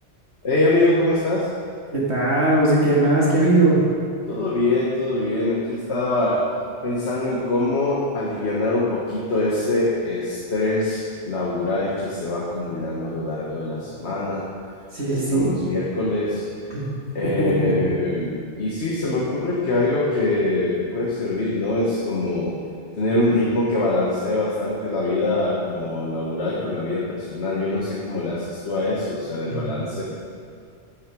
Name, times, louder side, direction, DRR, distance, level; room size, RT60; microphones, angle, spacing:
voice 1, 0.4-1.5 4.3-6.4 6.8-14.4 15.1-16.7 17.1-22.5 23.0-30.0, left 2 dB, 65° left, -4 dB, 1.7 m, -24 dB
voice 2, 1.9-3.8 14.9-15.5 16.7-16.9 17.2-17.9 29.5-29.7, right 2 dB, 60° right, -6 dB, 2.3 m, -19 dB
13.5 x 7.7 x 5.2 m, 2.4 s
omnidirectional pair, 1.3 m